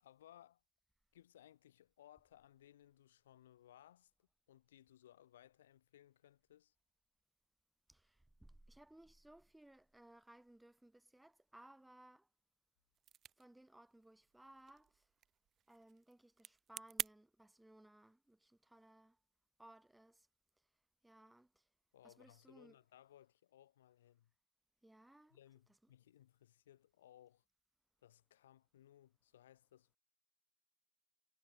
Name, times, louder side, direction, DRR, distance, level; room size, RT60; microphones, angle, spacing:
voice 1, 0.0-0.6 1.1-6.7 21.9-24.3 25.3-27.4 28.0-30.0, left 12 dB, 75° left, 1.3 m, -64 dB
voice 2, 7.9-12.3 13.4-15.1 15.7-19.2 19.6-20.3 21.0-21.7 22.0-22.8 24.8-25.4, right 1 dB, 5° right, 1.1 m, -62 dB
sound 1, 12.9-17.1, right 10 dB, 30° right, 0.3 m, -49 dB
hypercardioid pair, 105°, 0 cm